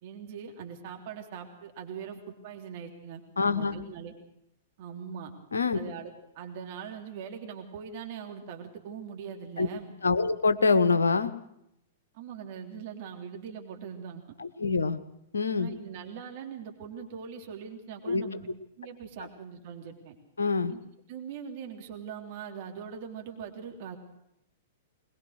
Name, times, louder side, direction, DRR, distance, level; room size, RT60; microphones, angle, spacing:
voice 1, 0.0-4.1 4.8-5.3 5.7-9.9 12.1-14.2 15.5-18.5 18.8-20.2 20.7-20.8 21.1-24.0, right 7 dB, 45° right, 2 dB, 3.4 m, -41 dB
voice 2, 3.4-3.7 5.5-5.8 9.6-9.7 10.0-11.3 14.4-15.0 15.3-15.7 18.1-18.2 20.4-20.7, left 4 dB, 75° left, 11 dB, 1.4 m, -25 dB
21.5 x 21.0 x 6.6 m, 0.80 s
figure-of-eight pair, 105°, 0 cm